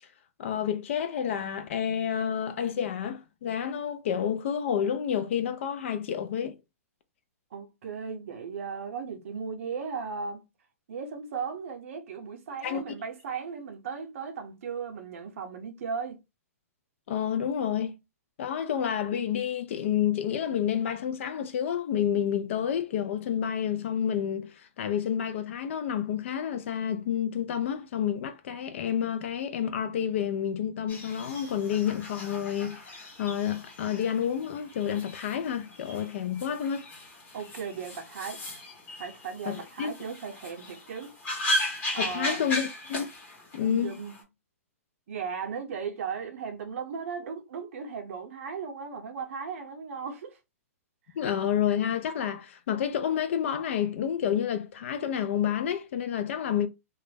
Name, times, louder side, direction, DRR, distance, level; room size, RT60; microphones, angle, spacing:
voice 1, 0.4-6.6 12.6-12.8 17.1-17.9 18.4-36.9 39.5-39.9 42.0-43.1 43.5-44.0 51.1-56.7, left 9 dB, 55° left, 0.4 m, -29 dB
voice 2, 7.5-10.5 10.9-16.2 37.3-38.4 39.0-41.1 41.9-42.4 43.6-44.1 45.1-50.4, right 6 dB, 60° right, 0.6 m, -36 dB
sound 1, 30.9-44.2, left 1 dB, 20° left, 0.9 m, -37 dB
2.2 x 2.0 x 3.3 m
hypercardioid pair, 145°, 8 cm